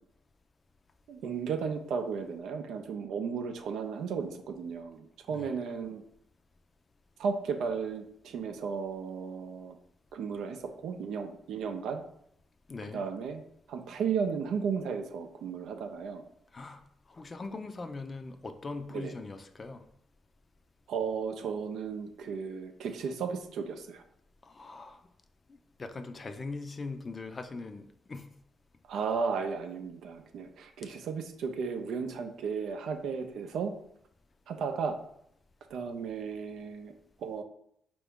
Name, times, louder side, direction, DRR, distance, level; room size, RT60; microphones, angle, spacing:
voice 1, 1.1-6.0 7.2-9.8 10.1-12.0 12.9-13.4 13.7-16.2 18.9-19.1 20.9-24.0 28.9-33.7 34.5-35.0 35.7-36.9 37.2-37.4, right 6 dB, 75° right, 6 dB, 0.4 m, -34 dB
voice 2, 12.7-13.0 16.5-16.8 17.1-19.8 24.4-25.0 25.5-28.3, left 3 dB, 40° left, 8 dB, 0.5 m, -41 dB
4.5 x 2.5 x 3.5 m, 0.72 s
supercardioid pair, 55°, 0 cm